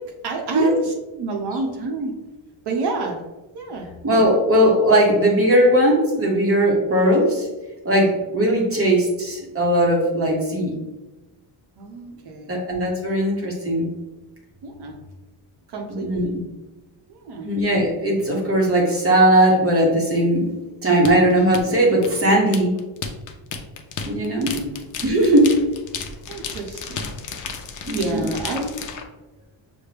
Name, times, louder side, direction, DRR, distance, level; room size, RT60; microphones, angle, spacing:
voice 1, 0.0-2.1 2.6-3.2 3.5-3.9 11.8-12.6 14.6-14.9 15.7-16.3 17.1-17.5 24.3-24.8 26.3-27.1 27.9-28.8, right 3 dB, 60° right, 2 dB, 0.8 m, -29 dB
voice 2, 4.0-7.5 7.8-10.8 12.5-13.9 15.9-16.4 17.4-20.5 20.8-22.7 24.0-24.6 25.0-25.5 27.9-28.3, right 1 dB, 30° right, -1 dB, 0.8 m, -18 dB
sound 1, 21.0-29.0, left 6 dB, 45° left, 0.5 m, -33 dB
6.0 x 2.2 x 3.3 m, 1.1 s
cardioid pair, 140°, 45 cm